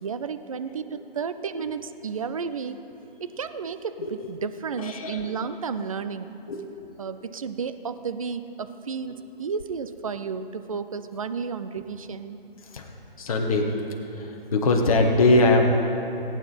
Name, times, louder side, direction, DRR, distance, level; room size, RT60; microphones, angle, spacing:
voice 1, 0.0-2.9 3.2-6.3 7.0-12.4, right 6 dB, 35° right, 11 dB, 0.5 m, -32 dB
voice 2, 4.8-5.3 6.5-6.6 12.7-12.9 13.2-13.7 14.1-15.6, left 2 dB, 35° left, 2 dB, 1.5 m, -21 dB
18.5 x 9.2 x 4.4 m, 2.9 s
figure-of-eight pair, 150°, 29 cm